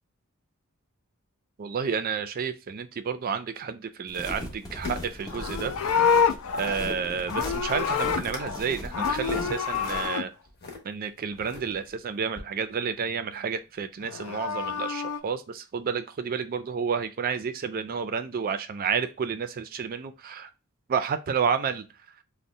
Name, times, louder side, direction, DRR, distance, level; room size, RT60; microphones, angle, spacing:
voice 1, 1.6-6.0 6.5-10.3 10.8-20.5 20.9-21.9, right 6 dB, 40° right, 0.4 m, -30 dB
sound 1, 4.1-10.1, left 1 dB, 15° left, 0.6 m, -39 dB
sound 2, 4.2-6.0 6.3-6.8 7.2-7.5 7.9-8.4 8.8-10.8 11.3-11.9 12.3-12.4, left 3 dB, 50° left, 0.8 m, -41 dB
Livestock farm animals working animals, 5.2-8.6 8.9-10.2 14.0-15.2, left 6 dB, 75° left, 0.4 m, -27 dB
2.6 x 2.1 x 4.0 m
head